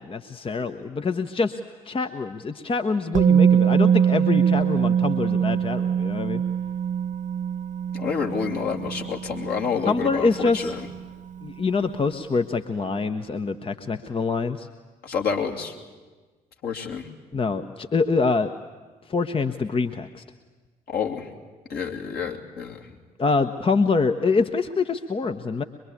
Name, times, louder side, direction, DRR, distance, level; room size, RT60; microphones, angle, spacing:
voice 1, 0.0-1.6 1.8-6.4 9.9-10.7 11.4-14.7 17.3-18.5 19.1-20.2 23.2-25.6, left 4 dB, 25° left, 8 dB, 1.0 m, -25 dB
Musical instrument, 3.1-11.0 11.3-11.5, right 8 dB, 40° right, 0.7 m, -23 dB
voice 2, 7.9-10.9 15.0-15.7 16.6-17.1 20.9-21.3 21.7-22.8, left 6 dB, 50° left, 0 dB, 2.8 m, -28 dB
23.0 x 22.5 x 8.7 m, 1.3 s
figure-of-eight pair, 45°, 20 cm